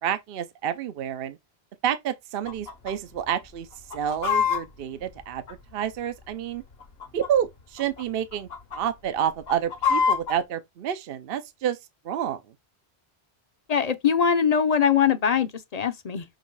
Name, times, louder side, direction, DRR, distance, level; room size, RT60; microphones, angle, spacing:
voice 1, 0.0-1.4 1.8-3.7 3.9-5.4 5.7-6.6 7.1-11.8 12.0-12.4, right 9 dB, 65° right, 0.8 m, -29 dB
Chicken rooster, 2.5-2.9 3.2-3.3 3.7-6.0 6.7-7.5 7.8-8.0 8.3-8.8 9.2-10.4, left 6 dB, 70° left, 1.4 m, -26 dB
voice 2, 13.7-16.2, left 7 dB, 45° left, 0.7 m, -22 dB
6.5 x 3.1 x 4.6 m
omnidirectional pair, 1.1 m